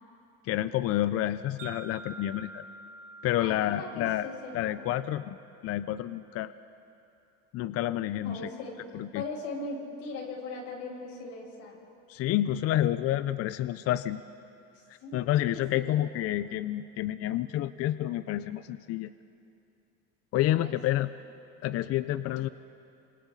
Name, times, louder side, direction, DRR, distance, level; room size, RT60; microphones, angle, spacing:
voice 1, 0.4-2.6 3.2-4.3 4.5-5.4 5.6-6.5 7.5-8.5 8.9-9.2 12.1-14.2 15.1-19.1 20.3-21.1 21.6-22.5, left 13 dB, 50° left, 14 dB, 0.6 m, -29 dB
Wind chime, 1.6-5.9, right 3 dB, 85° right, 3.9 m, -48 dB
voice 2, 3.2-4.9 8.2-8.7 9.1-11.8 14.7-16.0 20.4-20.7, left 3 dB, 80° left, -4 dB, 6.7 m, -40 dB
28.5 x 26.5 x 3.9 m, 2.6 s
cardioid pair, 120°, 31 cm